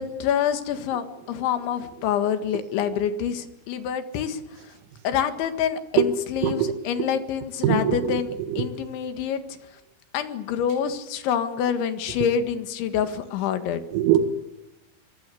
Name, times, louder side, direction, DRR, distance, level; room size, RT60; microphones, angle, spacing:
voice 1, 0.0-4.4 5.0-9.4 10.1-13.8, left 8 dB, 70° left, 8 dB, 3.9 m, -26 dB
voice 2, 6.4-6.8 7.6-8.2 8.5-8.7 13.9-14.3, right 9 dB, 85° right, 7 dB, 4.5 m, -21 dB
27.0 x 24.0 x 8.4 m, 0.91 s
omnidirectional pair, 6.0 m